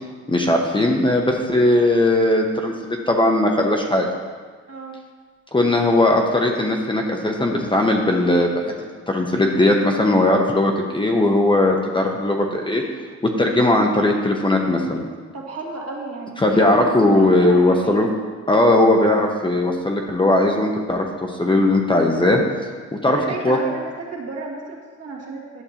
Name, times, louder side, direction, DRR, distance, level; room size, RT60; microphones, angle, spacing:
voice 1, 0.3-4.1 5.5-8.7 9.1-12.8 13.2-15.0 16.4-18.1 18.5-22.4 22.9-23.2 23.4-23.6, left 1 dB, 15° left, 1 dB, 0.9 m, -18 dB
voice 2, 4.7-5.0 15.3-18.1 23.1-25.6, right 3 dB, 55° right, -2 dB, 1.8 m, -33 dB
11.0 x 6.5 x 2.9 m, 1.5 s
cardioid pair, 90°, 30 cm